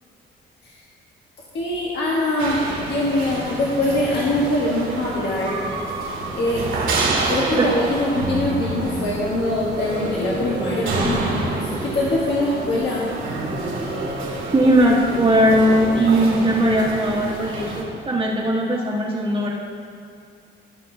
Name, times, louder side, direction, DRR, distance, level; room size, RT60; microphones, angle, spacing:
voice 1, 1.5-5.6 6.2-6.6 7.3-13.1, left 1 dB, 60° left, -5 dB, 1.3 m, -23 dB
sound 1, 2.4-17.8, right 2 dB, 80° right, 2.1 m, -28 dB
voice 2, 14.5-19.5, right 1 dB, 30° right, -6 dB, 1.3 m, -18 dB
15.0 x 5.8 x 2.7 m, 2.3 s
cardioid pair, 90°, 20 cm